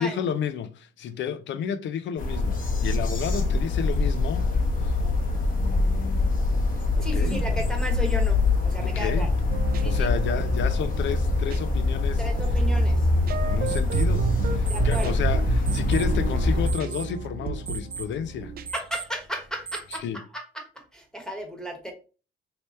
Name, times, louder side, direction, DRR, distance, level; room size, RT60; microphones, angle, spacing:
voice 1, 0.0-4.5 4.8-4.9 5.6-6.3 7.0-7.6 8.8-9.3 9.8-12.2 13.4-18.5 20.0-20.2, left 8 dB, 70° left, 0.5 m, -31 dB
sound 1, 2.2-16.7, left 3 dB, 45° left, 0.9 m, -24 dB
voice 2, 7.0-9.3 9.8-10.1 12.2-13.1 14.7-15.2 18.7-21.9, right 1 dB, 5° left, 1.1 m, -34 dB
sound 2, 9.5-18.7, right 6 dB, 50° right, 0.4 m, -31 dB
sound 3, 13.3-20.0, right 6 dB, 15° right, 1.1 m, -43 dB
3.2 x 2.9 x 3.2 m
cardioid pair, 90°, 20 cm